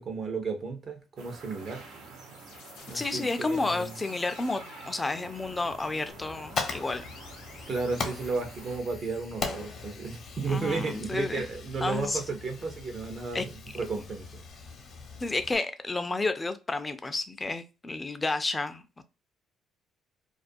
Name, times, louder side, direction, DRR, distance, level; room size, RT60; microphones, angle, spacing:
voice 1, 0.0-1.8 2.9-3.9 7.7-13.5 13.7-14.4, right 4 dB, 50° right, 0.6 m, -33 dB
sound 1, 1.2-8.8, right 4 dB, 85° right, 0.7 m, -48 dB
sound 2, 1.6-9.2, left 5 dB, 85° left, 0.6 m, -51 dB
voice 2, 2.9-7.1 10.5-11.5 11.8-12.2 13.3-13.4 15.2-19.0, left 3 dB, 20° left, 0.4 m, -31 dB
Fire, 6.1-15.6, left 4 dB, 55° left, 0.7 m, -40 dB
2.3 x 2.1 x 2.4 m
cardioid pair, 90°, 0 cm